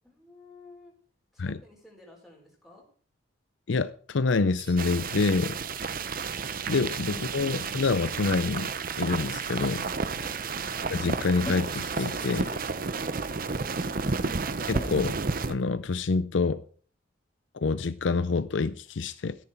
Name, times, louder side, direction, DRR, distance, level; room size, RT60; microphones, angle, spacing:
voice 1, 0.0-0.9 1.3-2.8 10.1-10.4 12.7-14.0, left 1 dB, ahead, 4.6 m, -53 dB
voice 2, 3.7-5.6 6.7-8.7 9.0-9.9 10.9-12.5 14.7-15.2 15.5-16.6 17.5-19.4, left 4 dB, 65° left, 0.5 m, -27 dB
sound 1, 4.6-5.0 6.9-7.7 9.6-10.1 11.7-12.7 14.1-15.1, right 3 dB, 25° right, 2.7 m, -50 dB
sound 2, 4.8-15.5, right 4 dB, 45° right, 0.8 m, -32 dB
sound 3, 10.4-15.0, equal, 25° left, 3.8 m, -48 dB
13.5 x 11.0 x 4.4 m
head